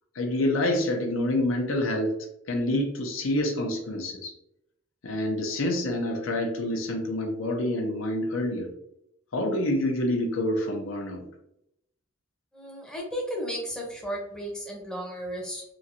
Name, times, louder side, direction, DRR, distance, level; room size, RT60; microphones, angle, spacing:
voice 1, 0.1-2.2 2.5-4.3 5.0-8.7 9.3-11.3, left 1 dB, 75° left, 3 dB, 0.6 m, -27 dB
voice 2, 12.5-15.6, equal, 5° left, -3 dB, 0.6 m, -34 dB
3.0 x 2.5 x 2.6 m, 0.79 s
head